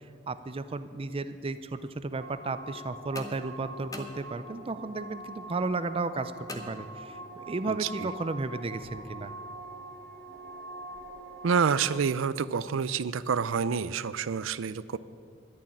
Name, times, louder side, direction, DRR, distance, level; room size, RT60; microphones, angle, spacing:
voice 1, 0.3-9.3, right 3 dB, 30° right, 13 dB, 0.4 m, -34 dB
sound 1, 2.1-12.0, right 2 dB, 55° right, 1.8 m, -44 dB
sound 2, 3.1-4.8 6.5-7.4, left 2 dB, 20° left, 0.9 m, -44 dB
voice 2, 7.7-8.1 11.4-15.0, right 6 dB, 85° right, 17 dB, 0.5 m, -28 dB
11.5 x 7.3 x 9.7 m, 2.2 s
head